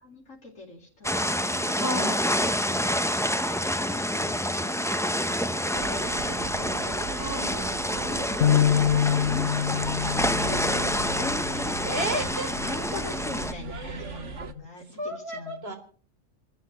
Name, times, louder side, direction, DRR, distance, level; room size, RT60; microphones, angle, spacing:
voice 1, 0.0-1.8 3.2-5.4 5.7-8.6 9.2-12.3 12.5-15.8, left 3 dB, 75° left, -4 dB, 4.3 m, -42 dB
sound 1, 1.0-13.5, equal, 5° left, 0.8 m, -28 dB
voice 2, 1.8-2.2 7.1-7.6 11.9-12.5 13.8-14.4 15.0-15.7, right 1 dB, 50° right, 6 dB, 3.7 m, -32 dB
sound 2, 5.7-14.5, right 5 dB, 70° right, 1.5 m, -38 dB
sound 3, 8.4-14.7, left 9 dB, 60° left, 1.2 m, -28 dB
27.5 x 14.0 x 3.1 m, 0.43 s
omnidirectional pair, 1.3 m